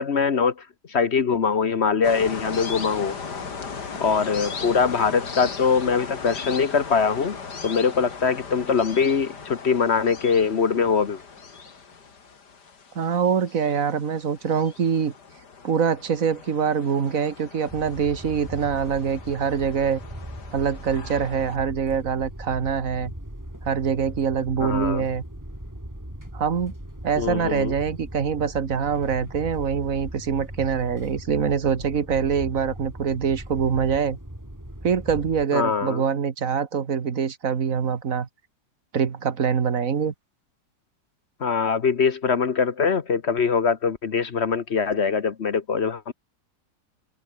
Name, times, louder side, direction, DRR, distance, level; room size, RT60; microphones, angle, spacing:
voice 1, 0.0-3.2 4.0-7.4 7.6-11.2 24.6-25.1 27.2-27.7 35.5-36.0 41.4-46.1, left 5 dB, 45° left, 1.1 m, -23 dB
sound 1, 2.0-21.6, left 5 dB, 65° left, 3.0 m, -38 dB
voice 2, 13.0-15.1 15.6-20.0 20.5-23.1 23.6-25.2 26.3-26.7 27.0-34.2 34.8-38.3 38.9-40.1, right 6 dB, 50° right, 1.9 m, -24 dB
sound 2, 17.7-35.4, right 1 dB, 10° right, 5.2 m, -39 dB
omnidirectional pair, 1.9 m